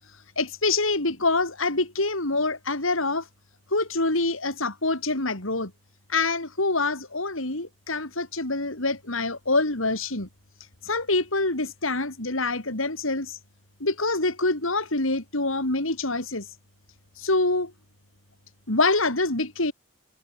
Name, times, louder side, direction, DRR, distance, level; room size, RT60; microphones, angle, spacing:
voice 1, 0.4-3.3 3.7-5.7 6.1-10.3 10.8-13.4 13.8-16.5 17.2-17.7 18.7-19.7, left 2 dB, 75° left, 4.7 m, -25 dB
head